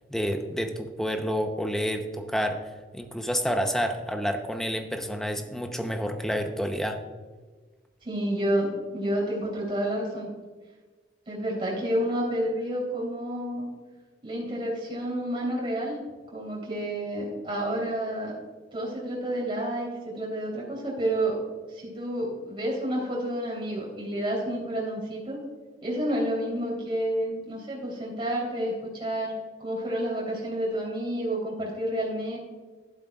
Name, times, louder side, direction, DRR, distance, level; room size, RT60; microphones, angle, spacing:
voice 1, 0.1-7.0, equal, 5° left, 5 dB, 0.8 m, -29 dB
voice 2, 8.0-10.3 11.3-13.7 14.2-16.0 16.3-18.3 18.7-21.4 21.7-25.4 25.8-29.3 29.6-32.4, right 1 dB, 30° right, -4 dB, 3.4 m, -29 dB
11.5 x 11.5 x 2.4 m, 1.4 s
head